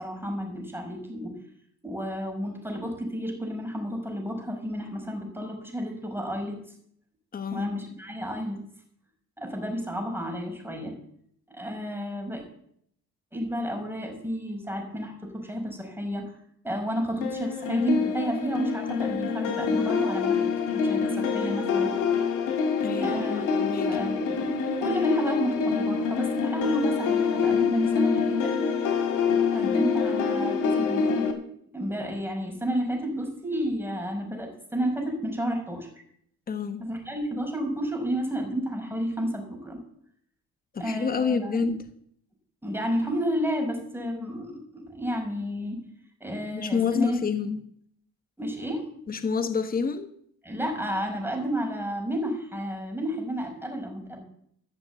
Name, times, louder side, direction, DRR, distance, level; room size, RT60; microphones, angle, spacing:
voice 1, 0.0-1.4 1.8-6.6 7.5-8.6 9.4-10.9 11.5-12.4 13.3-16.4 16.6-20.4 20.7-21.9 23.0-24.5 24.8-28.7 29.5-31.3 31.7-35.9 36.8-39.8 40.8-41.6 42.6-45.8 46.2-47.2 48.4-48.9 50.4-54.2, equal, 5° right, 2 dB, 5.2 m, -31 dB
voice 2, 7.3-7.7 22.8-24.0 36.5-36.9 40.7-41.9 46.5-47.6 49.1-50.1, left 5 dB, 30° left, 9 dB, 1.1 m, -28 dB
sound 1, 17.2-31.3, left 5 dB, 85° left, 2.7 m, -26 dB
14.0 x 6.8 x 8.2 m, 0.67 s
cardioid pair, 90°, 30 cm